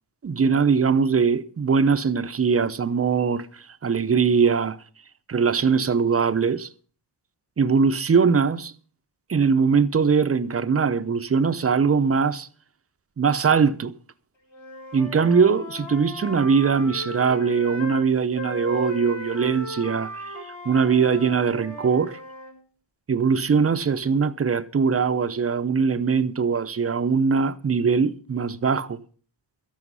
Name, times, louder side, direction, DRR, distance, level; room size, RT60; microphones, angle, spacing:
voice 1, 0.2-4.8 5.3-6.7 7.6-8.7 9.3-12.5 13.2-13.9 14.9-20.2 20.7-22.2 23.1-29.0, right 5 dB, 30° right, 0.6 m, -21 dB
Wind instrument woodwind instrument, 14.5-18.1 18.4-22.6, left 1 dB, 90° left, 6.6 m, -36 dB
13.5 x 11.0 x 5.5 m
wide cardioid pair, 145°, 45 cm